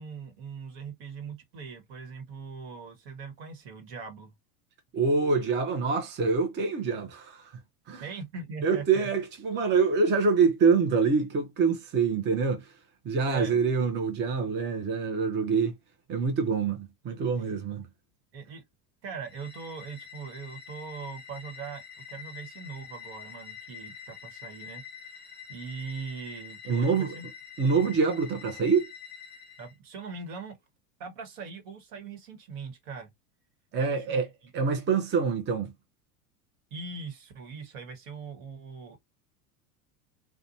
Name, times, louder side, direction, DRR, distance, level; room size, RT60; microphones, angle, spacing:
voice 1, 0.0-4.3 8.0-9.1 13.3-13.6 18.3-18.6 19.0-21.8 22.1-27.3 29.6-30.6 31.0-33.1 33.9-34.2 36.7-39.0, right 5 dB, 60° right, 1.3 m, -41 dB
voice 2, 4.9-7.6 7.9-8.1 8.6-12.7 13.0-15.7 16.1-17.9 26.7-27.1 27.6-28.9 33.7-35.7, right 5 dB, 25° right, 0.6 m, -26 dB
sound 1, 19.2-29.7, left 8 dB, 20° left, 0.8 m, -46 dB
2.5 x 2.3 x 2.6 m
hypercardioid pair, 90°, 46 cm